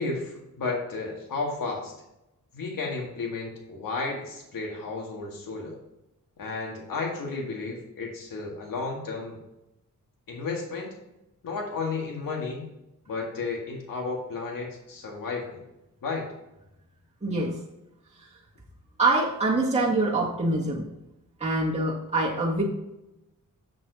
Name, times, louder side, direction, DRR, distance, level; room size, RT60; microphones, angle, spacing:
voice 1, 0.0-1.9 2.5-5.8 6.4-9.4 10.3-11.0 11.4-12.6 13.1-15.6 16.0-16.3, left 3 dB, 75° left, 0 dB, 2.0 m, -33 dB
voice 2, 17.2-17.6 18.2-18.3 19.0-20.9 21.4-22.6, right 2 dB, 20° right, -4 dB, 1.9 m, -25 dB
7.4 x 6.7 x 4.0 m, 0.89 s
cardioid pair, 85°, 33 cm